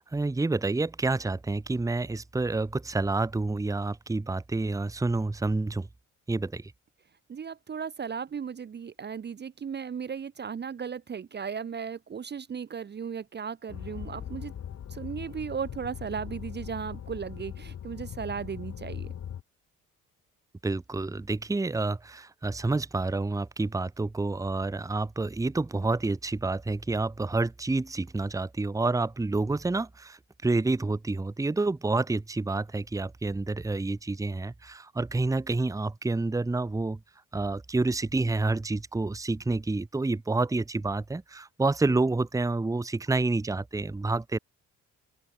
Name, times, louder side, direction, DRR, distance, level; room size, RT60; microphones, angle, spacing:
voice 1, 0.0-5.9 6.3-6.7 20.6-37.0 37.3-44.4, right 3 dB, 10° right, 0.9 m, -28 dB
voice 2, 7.3-14.5 14.9-19.1, right 6 dB, 35° right, 0.8 m, -36 dB
sound 1, 13.7-19.4, left 9 dB, 60° left, 3.0 m, -40 dB
open air
cardioid pair, 90°, 30 cm